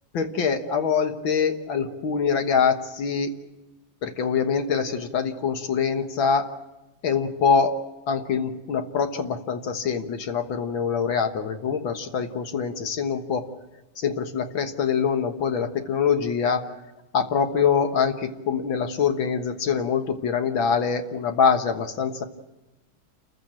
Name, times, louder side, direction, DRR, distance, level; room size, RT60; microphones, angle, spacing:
voice 1, 0.1-3.4 4.0-6.5 7.0-7.8 8.1-13.5 14.0-16.7 17.1-22.2, left 6 dB, 80° left, 7 dB, 2.2 m, -24 dB
29.0 x 15.0 x 8.8 m, 1.0 s
omnidirectional pair, 2.1 m